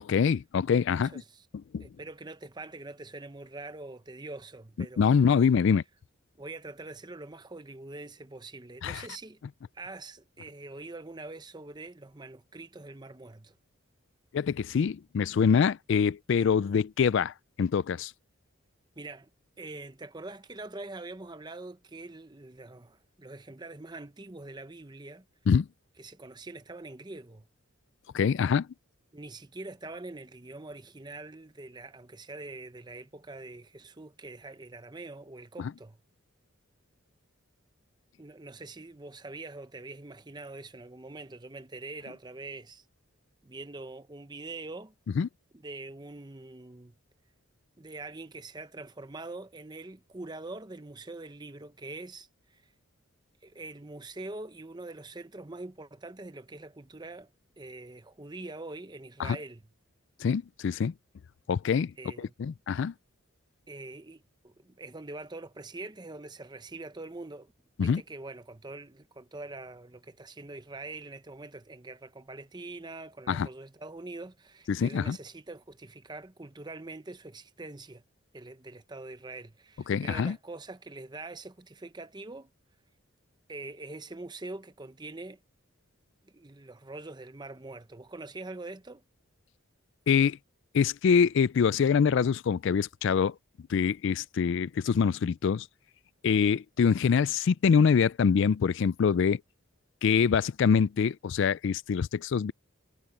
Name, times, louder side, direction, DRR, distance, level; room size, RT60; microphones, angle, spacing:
voice 1, 0.1-1.1 1.7-1.8 5.0-5.8 8.8-9.0 14.3-18.1 25.5-25.7 28.1-28.7 45.2-45.3 59.2-59.4 60.2-60.9 61.5-61.9 62.2-62.9 67.8-68.0 73.3-73.5 74.7-75.2 79.9-80.4 90.1-90.4 90.7-93.3 93.7-95.7 96.2-99.4 100.0-102.5, left 6 dB, 55° left, 0.3 m, -25 dB
voice 2, 1.0-1.5 1.8-5.5 6.3-9.4 9.7-13.5 19.0-19.3 19.6-25.3 26.0-27.5 29.1-36.0 38.2-42.8 43.4-44.9 45.5-46.9 47.8-52.7 53.4-57.3 57.6-59.6 62.0-62.3 63.7-67.5 67.8-78.0 78.3-82.5 83.5-85.4 86.3-89.0, right 2 dB, 20° right, 0.8 m, -44 dB
head